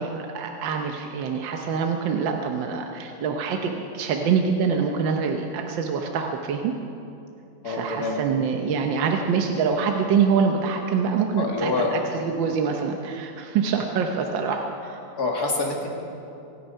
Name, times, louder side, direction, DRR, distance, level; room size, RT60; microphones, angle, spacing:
voice 1, 0.0-6.7 7.6-15.0, right 6 dB, 75° right, 3 dB, 1.6 m, -25 dB
voice 2, 7.6-8.2 11.4-11.9 15.2-15.9, left 3 dB, 55° left, 0 dB, 2.6 m, -26 dB
24.5 x 9.9 x 5.5 m, 2.8 s
omnidirectional pair, 2.1 m